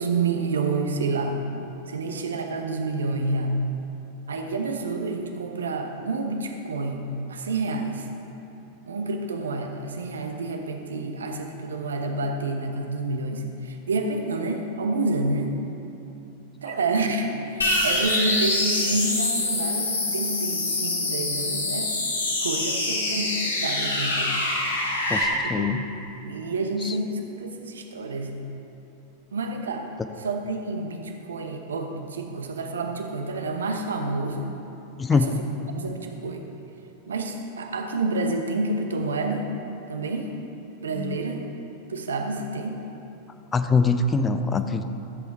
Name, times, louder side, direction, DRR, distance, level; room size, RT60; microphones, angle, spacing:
voice 1, 0.0-1.4 1.9-3.6 4.3-8.1 8.9-15.5 16.6-22.1 22.4-24.3 25.6-25.7 26.2-28.3 29.3-29.9 30.2-34.6 35.1-35.4 35.8-36.4 37.1-39.5 39.9-40.3 40.8-41.5 41.9-42.8, right 3 dB, 70° right, 4 dB, 1.0 m, -29 dB
sound 1, 17.6-25.2, left 2 dB, 75° left, 1.8 m, -25 dB
voice 2, 25.1-25.8 26.8-26.9 35.0-35.4 41.0-41.2 43.5-44.8, left 4 dB, 15° left, 9 dB, 0.5 m, -23 dB
13.5 x 7.9 x 4.2 m, 2.9 s
figure-of-eight pair, 90°, 0 cm